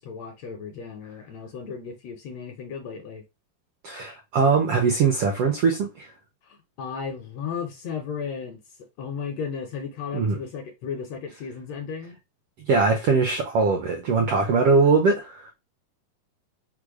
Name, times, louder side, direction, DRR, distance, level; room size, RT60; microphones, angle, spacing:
voice 1, 0.0-3.2 6.4-8.6 9.0-12.2, left 6 dB, 70° left, 1.6 m, -35 dB
voice 2, 3.8-6.1 10.1-10.4 12.7-15.5, right 4 dB, 80° right, 1.3 m, -21 dB
5.1 x 2.1 x 4.7 m
omnidirectional pair, 3.7 m